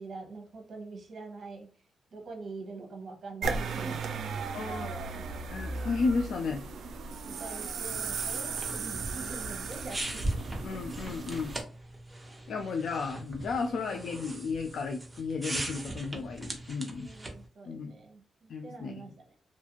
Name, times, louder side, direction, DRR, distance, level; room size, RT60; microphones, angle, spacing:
voice 1, 0.0-1.7 2.1-5.2 7.2-10.6 13.6-14.1 16.9-19.4, right 3 dB, 55° right, 2 dB, 0.8 m, -45 dB
sound 1, 3.4-11.6, right 4 dB, 80° right, 0.4 m, -36 dB
voice 2, 4.5-4.9 5.5-6.6 10.6-11.6 12.5-17.1 17.6-17.9 18.5-19.0, left 4 dB, 75° left, 3 dB, 0.4 m, -33 dB
sound 2, 7.8-17.5, right 1 dB, 15° right, 0.8 m, -39 dB
2.6 x 2.3 x 2.9 m, 0.39 s
cardioid pair, 75°, 0 cm